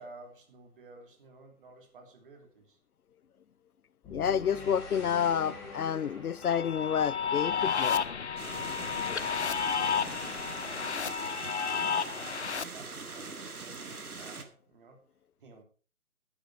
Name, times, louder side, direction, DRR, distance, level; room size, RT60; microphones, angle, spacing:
voice 1, 0.0-2.8 9.1-11.2 12.1-15.0 15.4-15.6, right 3 dB, 35° right, 3.1 m, -53 dB
sound 1, 4.0-8.3, left 4 dB, 10° left, 2.4 m, -45 dB
voice 2, 4.1-8.0, left 8 dB, 75° left, 0.6 m, -29 dB
sound 2, 6.4-12.6, left 6 dB, 50° left, 0.8 m, -31 dB
sound 3, 8.4-14.4, right 4 dB, 80° right, 2.1 m, -42 dB
11.0 x 10.5 x 4.6 m
figure-of-eight pair, 155°, 44 cm